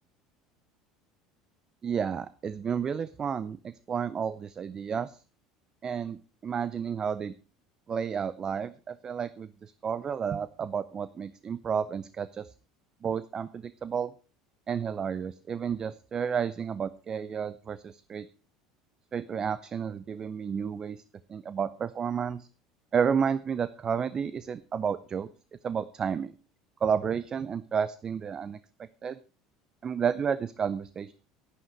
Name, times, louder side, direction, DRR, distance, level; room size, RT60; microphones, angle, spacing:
voice 1, 1.8-5.2 5.8-7.3 7.9-12.5 13.0-14.1 14.7-18.3 19.1-21.0 21.3-22.5 22.9-25.3 25.6-26.3 26.8-28.6 29.0-29.2 29.8-31.1, right 7 dB, 30° right, 16 dB, 0.5 m, -31 dB
11.0 x 10.0 x 4.6 m, 0.36 s
figure-of-eight pair, 70°, 2 cm